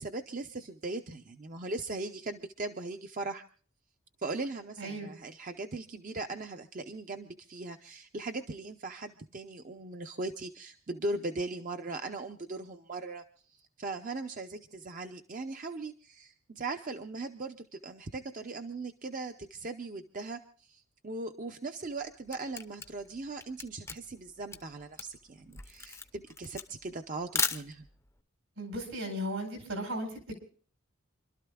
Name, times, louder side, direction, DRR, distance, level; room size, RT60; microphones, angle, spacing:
voice 1, 0.0-3.4 4.2-27.9, right 3 dB, 40° right, 6 dB, 0.6 m, -39 dB
voice 2, 4.8-5.1 28.6-30.3, equal, 75° right, 4 dB, 4.8 m, -36 dB
Camera, 21.9-28.1, left 5 dB, 10° left, 0.6 m, -37 dB
29.0 x 12.5 x 2.3 m, 0.44 s
head